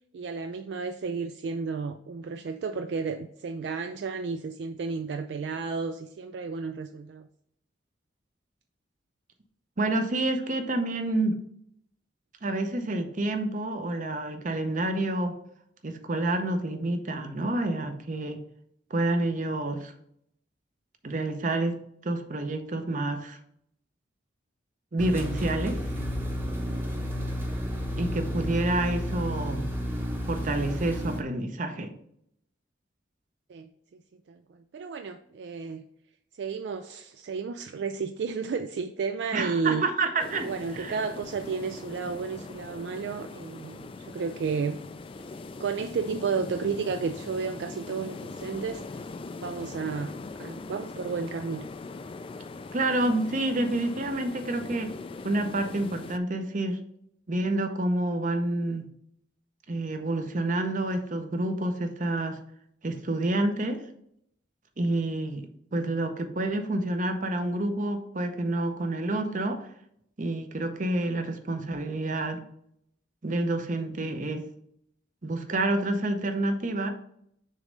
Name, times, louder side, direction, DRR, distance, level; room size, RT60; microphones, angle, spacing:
voice 1, 0.1-7.3 33.5-33.7 34.3-35.8 36.4-39.8 40.4-44.8 45.6-48.8 49.4-51.7, right 5 dB, 65° right, 8 dB, 0.3 m, -32 dB
voice 2, 9.8-11.4 12.4-15.4 15.8-18.4 18.9-19.9 21.0-21.8 22.0-23.4 24.9-25.8 28.0-29.7 30.3-31.9 39.3-41.0 52.7-54.9 55.2-56.8 57.3-58.9 59.7-62.4 62.8-63.8 64.8-69.7 70.2-72.4 73.2-74.5 75.2-76.9, right 2 dB, 45° right, 7 dB, 0.7 m, -28 dB
sound 1, 25.0-31.2, equal, 10° right, 0.9 m, -31 dB
sound 2, 40.2-56.2, left 3 dB, 30° left, 0.3 m, -41 dB
6.5 x 3.2 x 5.1 m, 0.72 s
head